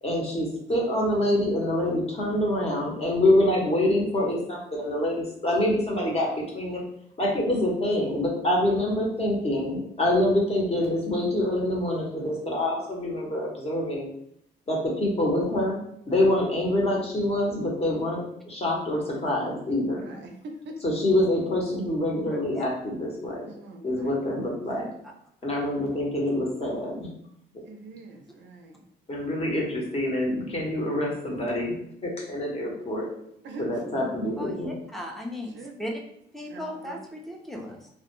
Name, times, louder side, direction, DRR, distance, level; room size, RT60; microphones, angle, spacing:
voice 1, 0.0-6.8 7.2-14.1 14.7-15.8 16.1-20.0 20.8-23.5 23.8-24.8 25.4-27.1 29.1-33.1 33.6-34.7, left 1 dB, 30° left, -2 dB, 0.9 m, -26 dB
voice 2, 20.0-21.0 23.5-24.6 27.6-28.8 33.4-34.0 35.4-35.8 36.5-37.0, right 1 dB, 65° right, 4 dB, 0.5 m, -43 dB
voice 3, 22.3-22.7 24.7-24.9 34.4-36.0 36.3-37.9, left 1 dB, ahead, 0 dB, 0.5 m, -37 dB
2.1 x 2.1 x 3.0 m, 0.72 s
cardioid pair, 90°, 20 cm